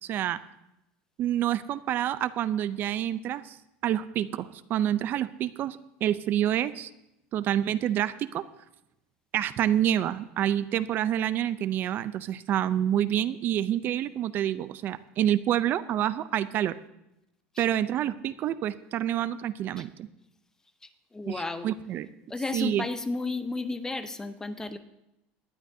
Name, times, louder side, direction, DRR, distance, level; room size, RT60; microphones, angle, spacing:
voice 1, 0.0-0.4 1.2-3.6 3.8-6.9 7.3-8.4 9.3-16.8 17.6-20.1 21.3-22.1 22.5-22.8, right 11 dB, 40° right, 15 dB, 0.5 m, -28 dB
voice 2, 20.8-21.7 22.3-24.8, left 3 dB, 10° left, 10 dB, 0.7 m, -33 dB
19.0 x 11.5 x 2.7 m, 0.88 s
supercardioid pair, 145°, 5 cm